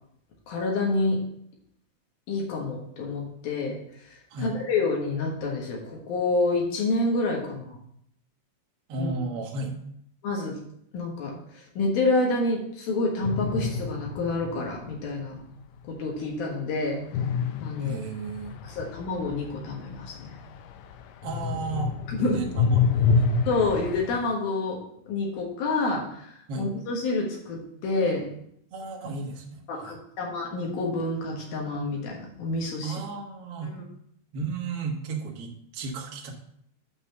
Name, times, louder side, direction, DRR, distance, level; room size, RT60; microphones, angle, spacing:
voice 1, 0.5-1.2 2.3-3.8 4.0-7.8 9.0-9.1 10.2-10.6 10.9-15.4 15.9-17.0 17.6-18.0 18.6-20.3 22.1-22.4 23.5-28.3 29.7-32.9 33.7-33.8, left 3 dB, 70° left, -1 dB, 3.2 m, -28 dB
voice 2, 8.9-9.8 17.8-18.6 21.2-23.3 26.5-26.7 28.7-30.0 32.8-33.7 34.3-36.3, right 3 dB, 65° right, 0 dB, 1.4 m, -34 dB
sound 1, 13.2-14.9 17.1-20.9 21.2-24.2, left 5 dB, 85° left, 1.9 m, -27 dB
8.8 x 4.2 x 6.9 m, 0.71 s
omnidirectional pair, 4.6 m